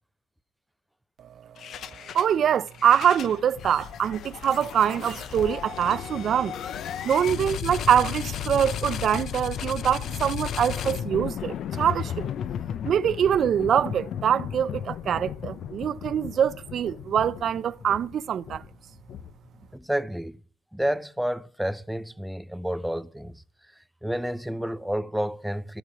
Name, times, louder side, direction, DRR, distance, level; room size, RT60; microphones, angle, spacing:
sound 1, 1.6-2.3 2.7-19.6, left 9 dB, 60° left, 0.7 m, -34 dB
voice 1, 2.1-6.5 7.0-12.3 12.8-18.6, right 9 dB, 55° right, 0.5 m, -24 dB
voice 2, 19.7-20.4 20.7-23.4 24.0-25.8, equal, 5° right, 0.5 m, -30 dB
14.0 x 10.0 x 5.0 m
cardioid pair, 110°, 0 cm